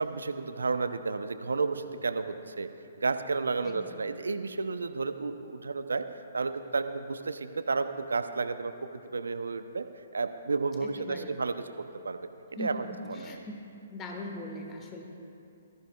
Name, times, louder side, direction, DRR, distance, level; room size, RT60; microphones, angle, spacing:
voice 1, 0.0-2.7 3.0-6.1 6.3-9.9 10.1-11.6 12.0-12.3 12.6-13.4, right 4 dB, 75° right, 10 dB, 0.7 m, -32 dB
voice 2, 3.6-4.0 10.8-11.4 12.5-13.6 13.9-15.0, left 1 dB, 20° left, 2 dB, 1.5 m, -41 dB
19.5 x 14.5 x 2.4 m, 2.7 s
figure-of-eight pair, 130°, 0 cm